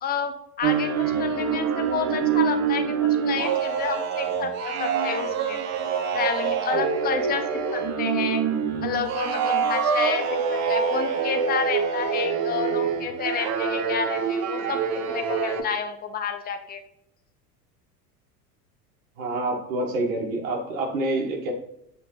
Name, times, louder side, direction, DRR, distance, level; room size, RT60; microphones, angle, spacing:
voice 1, 0.0-5.6 6.1-8.4 8.8-14.8 15.1-16.8, left 6 dB, 20° left, 9 dB, 0.6 m, -30 dB
sound 1, 0.6-15.6, right 6 dB, 35° right, 0.8 m, -25 dB
voice 2, 19.2-21.5, right 2 dB, 55° right, 0 dB, 1.5 m, -27 dB
8.6 x 3.8 x 3.1 m, 0.77 s
figure-of-eight pair, 80°, 48 cm